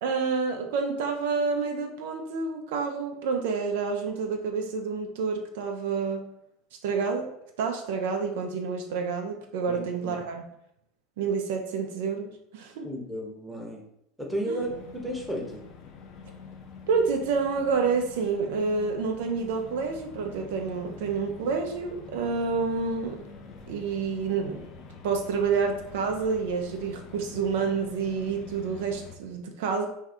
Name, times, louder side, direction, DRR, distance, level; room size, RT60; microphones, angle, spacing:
voice 1, 0.0-6.2 6.8-7.3 7.6-10.4 11.2-12.9 14.5-14.7 16.9-23.2 23.7-24.6 25.0-29.9, right 5 dB, 70° right, 3 dB, 0.4 m, -28 dB
voice 2, 9.7-10.2 12.8-13.8 14.2-15.6, equal, ahead, -1 dB, 0.8 m, -33 dB
sound 1, 14.6-29.2, left 5 dB, 50° left, 0.4 m, -46 dB
2.6 x 2.3 x 3.4 m, 0.78 s
hypercardioid pair, 80°, 0 cm